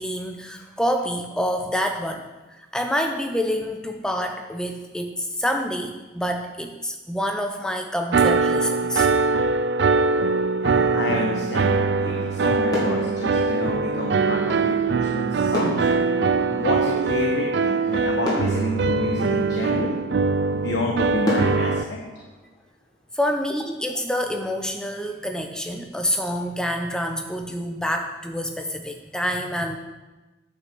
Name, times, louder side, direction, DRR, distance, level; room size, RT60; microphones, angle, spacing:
voice 1, 0.0-2.2 2.7-9.1 13.4-13.5 23.1-29.8, equal, 5° left, 4 dB, 0.7 m, -27 dB
sound 1, 8.1-21.8, right 4 dB, 65° right, 0.4 m, -22 dB
voice 2, 10.6-19.9 20.5-22.0, left 1 dB, 70° left, -1 dB, 1.2 m, -29 dB
sound 2, 12.2-12.4 12.7-14.2 15.5-17.4 17.9-18.0 18.2-19.8 20.4-20.5 21.2-23.1 23.5-23.7, left 1 dB, 20° left, 2.6 m, -32 dB
9.3 x 5.9 x 6.1 m, 1.2 s
head